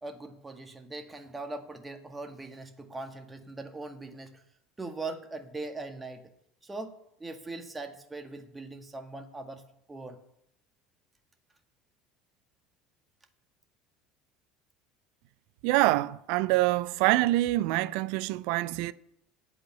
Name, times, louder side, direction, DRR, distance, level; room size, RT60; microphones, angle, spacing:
voice 1, 0.0-4.4 4.8-6.2 6.6-6.9 7.2-9.6 9.9-10.2, right 3 dB, 15° right, 1.8 m, -40 dB
voice 2, 15.6-18.9, right 18 dB, 60° right, 0.5 m, -25 dB
8.8 x 7.7 x 8.8 m
figure-of-eight pair, 65°, 0 cm